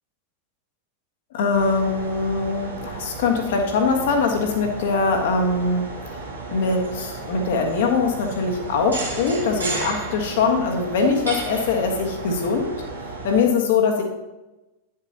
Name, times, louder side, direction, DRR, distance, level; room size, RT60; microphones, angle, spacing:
voice 1, 1.3-6.2 6.5-12.7 13.2-14.0, left 4 dB, 55° left, 3 dB, 1.4 m, -22 dB
sound 1, 1.5-13.4, right 3 dB, 75° right, 1.6 m, -33 dB
9.7 x 7.6 x 2.9 m, 1.0 s
figure-of-eight pair, 90°, 0 cm